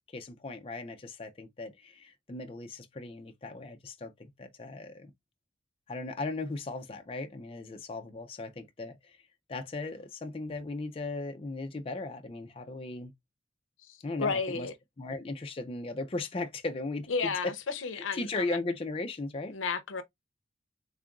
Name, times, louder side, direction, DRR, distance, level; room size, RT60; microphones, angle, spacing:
voice 1, 0.1-4.1 4.4-5.1 5.9-9.2 9.5-13.1 14.0-14.7 15.0-17.3 17.9-19.5, left 2 dB, 30° left, 0.4 m, -37 dB
voice 2, 13.9-14.7 17.1-18.6 19.5-20.0, left 4 dB, 85° left, 0.6 m, -33 dB
3.7 x 2.5 x 3.4 m
head